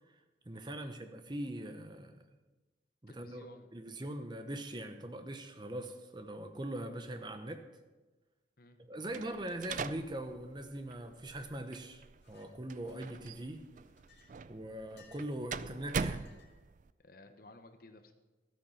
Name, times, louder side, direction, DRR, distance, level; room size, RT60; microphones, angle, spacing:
voice 1, 0.4-2.2 3.0-3.5 3.7-7.7 8.8-13.7 14.5-16.3, right 1 dB, 25° right, 7 dB, 0.9 m, -41 dB
voice 2, 3.1-3.7 8.6-9.4 17.0-18.1, left 2 dB, 50° left, 7 dB, 1.0 m, -56 dB
sound 1, 9.1-16.9, right 5 dB, 45° right, 0.3 m, -43 dB
Chink clink, 12.2-12.5 12.9-13.4 13.9-15.4 15.9-16.6, left 5 dB, 70° left, 2.0 m, -63 dB
13.0 x 8.8 x 5.7 m, 1.2 s
head